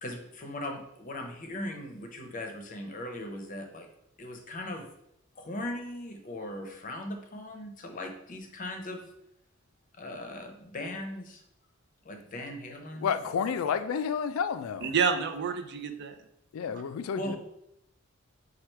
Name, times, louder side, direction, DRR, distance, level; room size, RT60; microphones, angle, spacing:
voice 1, 0.0-3.9 4.2-4.9 5.4-9.1 9.9-11.4 12.0-13.2 17.1-17.4, left 1 dB, 40° left, 4 dB, 0.6 m, -39 dB
voice 2, 13.0-14.9 16.5-17.4, left 7 dB, 90° left, 11 dB, 0.3 m, -30 dB
voice 3, 14.8-16.2 16.7-16.8, right 6 dB, 55° right, 7 dB, 0.4 m, -29 dB
4.5 x 2.4 x 4.4 m, 0.79 s
head